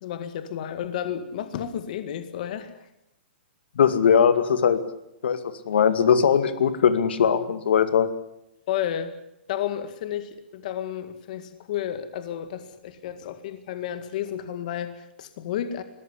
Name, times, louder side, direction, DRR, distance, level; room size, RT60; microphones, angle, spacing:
voice 1, 0.0-2.9 8.7-9.1 9.5-15.8, left 10 dB, 45° left, 10 dB, 2.0 m, -32 dB
voice 2, 3.8-4.8 5.2-5.4 5.7-8.1, left 7 dB, 75° left, 11 dB, 2.4 m, -20 dB
21.5 x 18.0 x 9.9 m, 0.83 s
hypercardioid pair, 165°, 6 cm